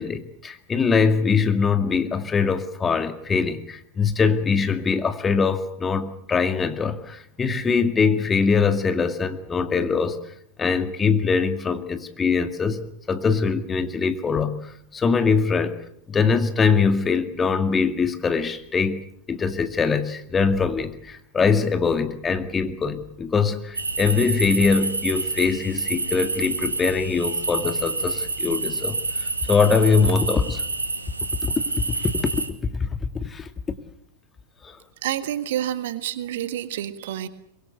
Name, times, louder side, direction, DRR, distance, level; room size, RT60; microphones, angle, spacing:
voice 1, 0.0-10.2 10.6-12.8 13.1-15.8 16.1-30.6 31.4-32.9 33.1-33.8 34.6-34.8, left 5 dB, 20° left, 9 dB, 2.1 m, -23 dB
sound 1, 23.8-32.5, right 3 dB, 80° right, 2.1 m, -28 dB
voice 2, 35.0-37.3, right 11 dB, 55° right, 13 dB, 1.6 m, -28 dB
24.0 x 22.0 x 8.1 m, 0.68 s
figure-of-eight pair, 90°, 0 cm